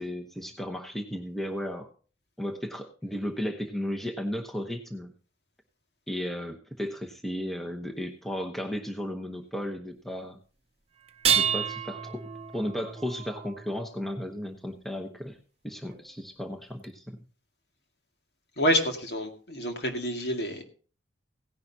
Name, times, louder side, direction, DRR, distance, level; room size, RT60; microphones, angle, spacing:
voice 1, 0.0-1.9 2.4-5.1 6.1-10.4 11.3-12.2 12.5-15.4 15.6-17.2, equal, ahead, 3 dB, 0.9 m, -34 dB
sound 1, 11.1-14.3 15.9-16.0 16.8-16.9, right 8 dB, 35° right, 0.7 m, -30 dB
voice 2, 18.6-20.6, equal, 60° left, 4 dB, 2.1 m, -28 dB
17.0 x 10.5 x 2.8 m, 0.39 s
head